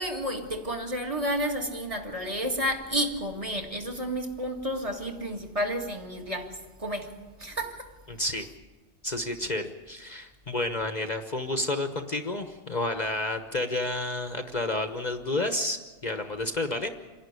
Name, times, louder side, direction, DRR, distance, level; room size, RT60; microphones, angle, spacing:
voice 1, 0.0-7.9, equal, 30° right, 2.0 m, -31 dB
voice 2, 8.1-8.5 9.0-16.9, left 2 dB, 40° left, 1.1 m, -30 dB
27.0 x 11.5 x 9.6 m
omnidirectional pair, 1.2 m